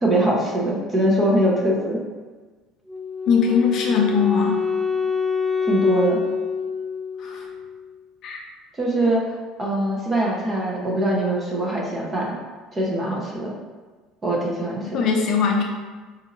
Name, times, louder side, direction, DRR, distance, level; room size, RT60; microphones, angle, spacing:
voice 1, 0.0-2.0 5.6-6.2 8.8-9.2 9.6-12.4 12.7-13.5 14.2-15.0, right 1 dB, 25° right, -3 dB, 0.9 m, -22 dB
Wind instrument woodwind instrument, 2.9-7.9, left 5 dB, 5° right, 0.4 m, -26 dB
voice 2, 3.3-4.6 7.2-7.5 8.2-8.4 14.8-15.6, left 6 dB, 60° left, 0 dB, 0.6 m, -21 dB
4.1 x 2.7 x 2.5 m, 1.3 s
supercardioid pair, 110°, 0 cm